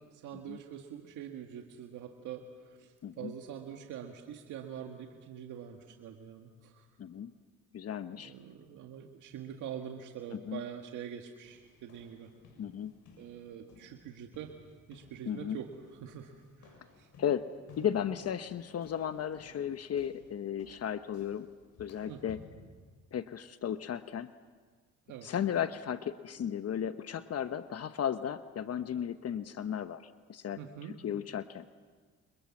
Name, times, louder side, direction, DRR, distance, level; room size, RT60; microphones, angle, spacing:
voice 1, 0.1-6.9 8.1-12.3 13.2-14.5 14.9-17.1 22.1-22.2 25.1-25.3 30.6-31.0, right 9 dB, 90° right, 3 dB, 1.8 m, -45 dB
voice 2, 7.0-7.3 7.7-8.3 10.3-10.6 12.6-12.9 15.3-15.6 17.2-17.5 17.8-21.5 21.8-22.4 23.1-24.3 25.2-31.6, left 9 dB, 55° left, 10 dB, 1.0 m, -35 dB
sound 1, 11.4-22.6, left 4 dB, 80° left, 7.1 m, -58 dB
28.5 x 26.0 x 7.3 m, 1.5 s
cardioid pair, 90°, 30 cm